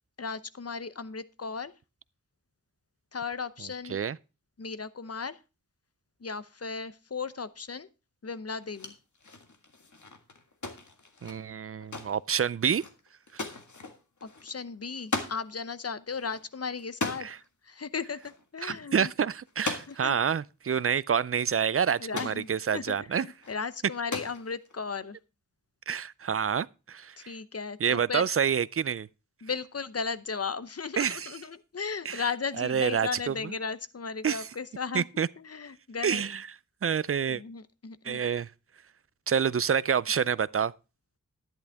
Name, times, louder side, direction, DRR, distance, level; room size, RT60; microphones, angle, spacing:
voice 1, 0.2-1.7 3.1-4.0 4.6-5.4 6.2-7.9 8.2-8.9 14.2-17.3 17.6-19.1 19.9-20.2 22.0-25.2 27.2-28.3 29.4-35.1 35.4-36.2 37.3-38.2, left 5 dB, 50° left, 0.8 m, -36 dB
sound 1, 8.6-15.4 15.7-15.8 16.1-17.4 18.1-18.4 18.7-18.8 19.5-20.2 21.0-21.1 21.3-22.5 23.2-23.6 23.9-24.8, left 3 dB, 65° left, 1.8 m, -38 dB
voice 2, 11.2-12.8 17.2-17.4 18.6-23.3 25.9-27.3 27.8-29.1 31.0-31.3 32.1-32.2 32.6-33.5 34.2-34.5 34.9-35.3 36.0-36.5 36.8-37.4 38.0-38.5 39.3-40.7, right 7 dB, 45° right, 0.4 m, -28 dB
11.5 x 10.5 x 3.5 m
wide cardioid pair, 70°, 32 cm